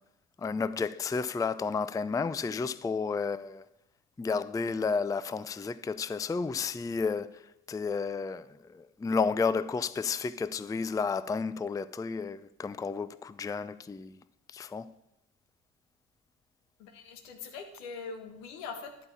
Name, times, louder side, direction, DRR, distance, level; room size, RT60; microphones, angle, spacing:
voice 1, 0.4-3.7 4.2-7.4 7.7-14.1 14.5-14.9, left 5 dB, 10° left, 0.4 m, -32 dB
voice 2, 16.8-19.1, left 5 dB, 75° left, 1.4 m, -42 dB
11.5 x 5.6 x 8.5 m
figure-of-eight pair, 45°, 40 cm